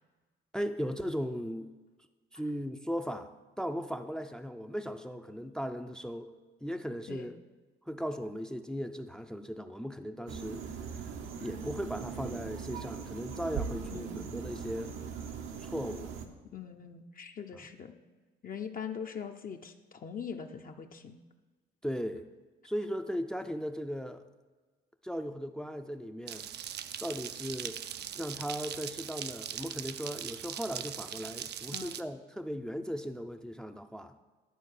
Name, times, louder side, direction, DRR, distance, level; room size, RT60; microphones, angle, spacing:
voice 1, 0.5-1.7 2.3-6.3 6.6-7.4 7.9-10.6 10.9-11.1 11.4-14.9 15.6-16.1 17.5-17.6 21.8-22.2 22.6-24.2 25.0-26.5 27.0-27.8 28.1-34.1, equal, 5° left, 7 dB, 0.5 m, -37 dB
sound 1, 10.3-16.3, right 6 dB, 85° right, 1.0 m, -40 dB
voice 2, 16.5-17.9 18.4-21.2 31.7-32.0, left 7 dB, 45° left, 5 dB, 0.7 m, -42 dB
sound 2, 26.3-32.0, right 9 dB, 55° right, 0.5 m, -40 dB
11.0 x 4.2 x 6.6 m, 1.3 s
cardioid pair, 90°, 20 cm